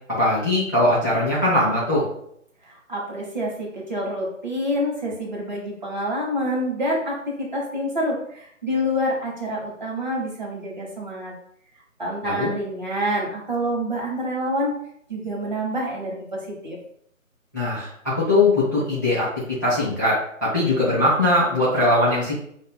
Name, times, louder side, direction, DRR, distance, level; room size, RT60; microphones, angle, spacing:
voice 1, 0.2-2.1 12.2-12.5 17.5-22.3, left 1 dB, 15° left, -11 dB, 0.7 m, -21 dB
voice 2, 2.6-11.3 12.0-14.8 15.1-16.8, equal, 35° right, -3 dB, 1.0 m, -27 dB
7.0 x 2.4 x 2.2 m, 0.69 s
figure-of-eight pair, 160°, 41 cm